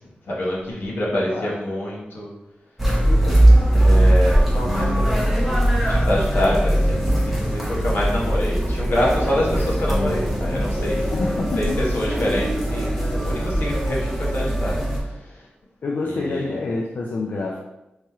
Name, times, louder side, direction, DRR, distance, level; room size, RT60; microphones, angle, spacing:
voice 1, 0.0-2.3 3.7-11.1 11.6-15.5 16.0-16.6, left 1 dB, 85° left, -5 dB, 1.1 m, -26 dB
voice 2, 1.1-1.6 3.0-3.5 11.0-11.8 15.8-17.6, left 3 dB, 60° left, -1 dB, 0.4 m, -27 dB
sound 1, 2.8-15.0, right 1 dB, ahead, 1.0 m, -20 dB
3.1 x 3.0 x 3.5 m, 0.95 s
wide cardioid pair, 100°, 4 cm